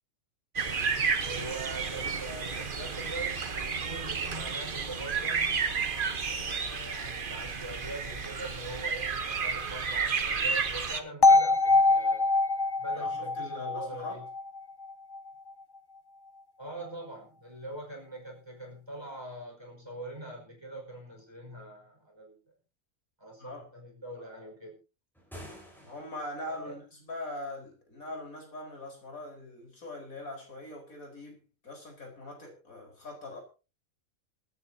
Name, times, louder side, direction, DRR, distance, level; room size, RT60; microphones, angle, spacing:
sound 1, 0.6-11.0, right 5 dB, 40° right, 1.2 m, -32 dB
voice 1, 1.2-5.7 6.2-12.3 12.8-14.3 16.6-22.4 23.2-24.8 26.5-26.8, right 1 dB, 20° right, 5.3 m, -43 dB
sound 2, 11.2-15.2, left 3 dB, 30° left, 0.4 m, -24 dB
voice 2, 12.9-14.2 23.4-23.7 25.8-33.4, left 1 dB, 85° left, 5.0 m, -42 dB
sound 3, 25.1-26.4, equal, ahead, 4.4 m, -48 dB
27.5 x 9.4 x 2.8 m
omnidirectional pair, 1.4 m